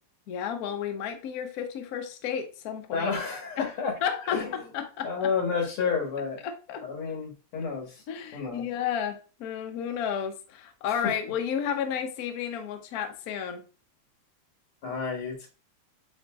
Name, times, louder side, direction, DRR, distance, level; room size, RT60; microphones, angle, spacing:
voice 1, 0.3-3.1 3.6-3.7 4.0-4.4 4.7-5.3 6.4-6.8 8.1-13.6, left 8 dB, 70° left, 0.9 m, -32 dB
voice 2, 2.9-3.9 4.3-4.5 5.0-6.4 6.8-8.0 8.3-8.6 10.9-11.1 14.8-15.5, left 5 dB, 90° left, 2.4 m, -30 dB
7.6 x 2.6 x 2.3 m
omnidirectional pair, 2.4 m